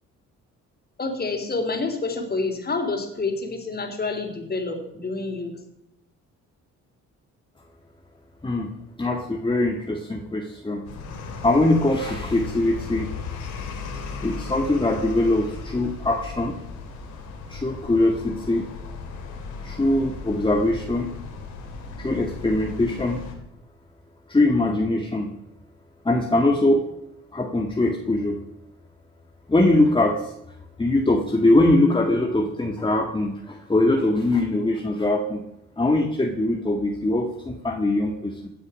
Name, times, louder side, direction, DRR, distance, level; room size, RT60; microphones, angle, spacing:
voice 1, 1.0-5.5, left 3 dB, 30° left, 5 dB, 3.7 m, -28 dB
voice 2, 9.0-10.8 11.4-13.1 14.2-16.6 17.5-18.7 19.6-21.1 22.0-23.2 24.3-25.3 26.0-26.8 27.3-28.4 29.5-30.3 30.8-35.4 35.8-38.5, left 2 dB, 15° left, 2 dB, 1.8 m, -22 dB
sound 1, 10.9-23.3, left 4 dB, 85° left, 3.3 m, -36 dB
17.0 x 9.6 x 6.3 m, 0.82 s
cardioid pair, 90°, 30 cm